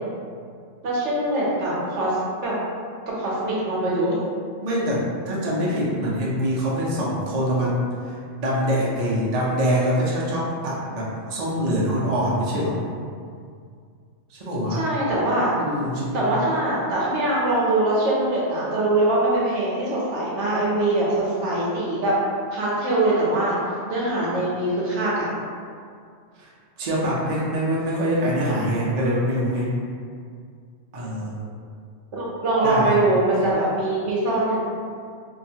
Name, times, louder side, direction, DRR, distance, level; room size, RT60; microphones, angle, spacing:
voice 1, 0.8-2.2 2.4-2.5 3.2-4.2 14.8-15.5 16.1-22.2 22.5-23.6 23.9-25.3 32.1-34.6, right 2 dB, 70° right, -6 dB, 1.0 m, -22 dB
voice 2, 4.6-12.8 14.3-14.8 15.6-16.3 26.4-26.5 26.8-29.7 30.9-31.4 32.6-33.0, equal, 50° right, -6 dB, 0.5 m, -24 dB
2.8 x 2.3 x 2.7 m, 2.2 s
omnidirectional pair, 1.3 m